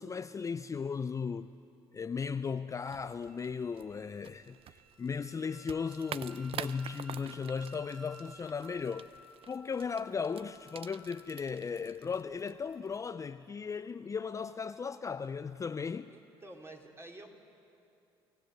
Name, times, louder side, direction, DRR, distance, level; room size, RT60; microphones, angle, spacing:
voice 1, 0.0-1.5 1.9-9.1 9.5-16.1, left 5 dB, 25° left, 0.5 m, -36 dB
sound 1, 2.8-13.1, right 9 dB, 50° right, 0.7 m, -48 dB
Wind instrument woodwind instrument, 3.3-11.4, equal, 5° left, 2.4 m, -56 dB
voice 2, 16.1-17.3, right 2 dB, 20° right, 3.6 m, -50 dB
29.0 x 16.0 x 8.0 m
hypercardioid pair, 70°, 12 cm